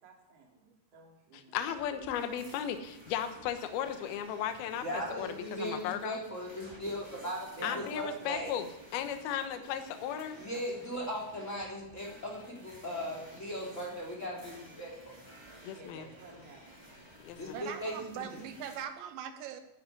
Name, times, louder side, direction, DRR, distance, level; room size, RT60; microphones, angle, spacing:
voice 1, 0.0-0.6 0.9-1.6 7.6-8.5 15.7-16.6, right 2 dB, 35° right, -2 dB, 3.8 m, -49 dB
voice 2, 1.3-6.2 7.6-8.6 8.9-10.4 15.6-16.1 17.2-17.6, left 9 dB, 75° left, 8 dB, 2.4 m, -36 dB
sound 1, 1.7-18.8, right 1 dB, 5° right, 2.8 m, -54 dB
voice 3, 4.8-8.6 10.4-15.1 17.4-18.3, equal, 15° left, -1 dB, 3.3 m, -38 dB
voice 4, 17.5-19.6, right 9 dB, 75° right, 8 dB, 3.0 m, -41 dB
13.0 x 10.5 x 9.7 m, 0.90 s
omnidirectional pair, 5.8 m